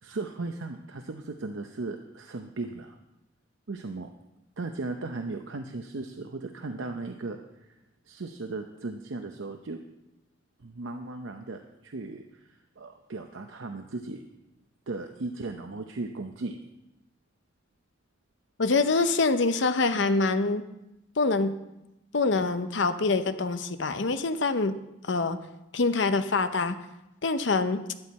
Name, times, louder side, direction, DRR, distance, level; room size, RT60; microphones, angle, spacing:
voice 1, 0.0-3.0 3.7-4.1 4.6-7.4 8.1-9.8 10.6-14.2 14.9-16.6, right 3 dB, 85° right, 5 dB, 0.7 m, -36 dB
voice 2, 18.6-20.6 21.2-21.5 22.1-24.7 25.0-25.4 25.7-26.8 27.2-27.8, left 3 dB, 65° left, 10 dB, 0.8 m, -25 dB
12.5 x 10.5 x 4.2 m, 0.92 s
head